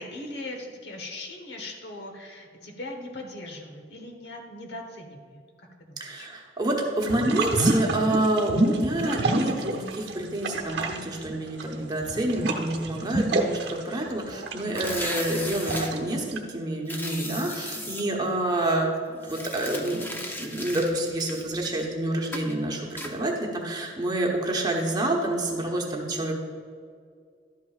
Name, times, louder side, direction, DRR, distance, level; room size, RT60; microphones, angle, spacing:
voice 1, 0.0-6.3, left 2 dB, 65° left, 2 dB, 1.2 m, -40 dB
voice 2, 6.0-18.9 19.2-20.1 20.4-26.4, right 1 dB, 20° right, 0 dB, 1.0 m, -28 dB
sound 1, 7.0-10.1 10.4-16.4, right 2 dB, 65° right, 0.9 m, -28 dB
sound 2, 14.7-15.9 16.9-18.0 19.2-21.9 22.3-22.5 23.0-23.1, left 1 dB, 10° left, 0.6 m, -36 dB
12.0 x 8.2 x 2.4 m, 2.1 s
head